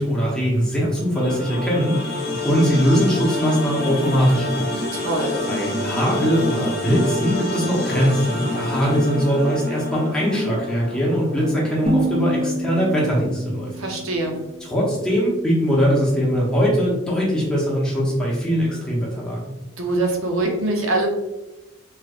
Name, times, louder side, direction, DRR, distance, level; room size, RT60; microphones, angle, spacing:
voice 1, 0.0-4.8 5.5-13.7 14.6-19.5, equal, 5° left, -6 dB, 0.8 m, -21 dB
sound 1, 1.1-12.2, left 2 dB, 45° left, 0.7 m, -28 dB
voice 2, 4.9-5.4 13.7-14.4 19.8-21.1, right 2 dB, 70° right, 2 dB, 0.6 m, -23 dB
sound 2, 11.9-14.9, right 1 dB, 25° right, 0.6 m, -27 dB
3.1 x 3.0 x 2.4 m, 0.98 s
head